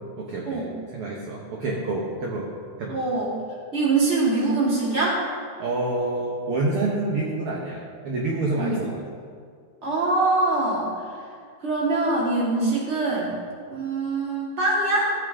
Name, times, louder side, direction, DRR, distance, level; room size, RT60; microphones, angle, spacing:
voice 1, 0.2-0.6 0.9-2.5 2.8-2.9 5.6-9.0, right 2 dB, 60° right, -3 dB, 1.6 m, -27 dB
voice 2, 2.9-3.3 3.7-5.2 8.5-8.8 9.8-10.9 11.6-13.3 13.7-15.1, right 2 dB, 20° right, -6 dB, 2.4 m, -23 dB
14.5 x 8.8 x 3.7 m, 2.1 s
omnidirectional pair, 3.8 m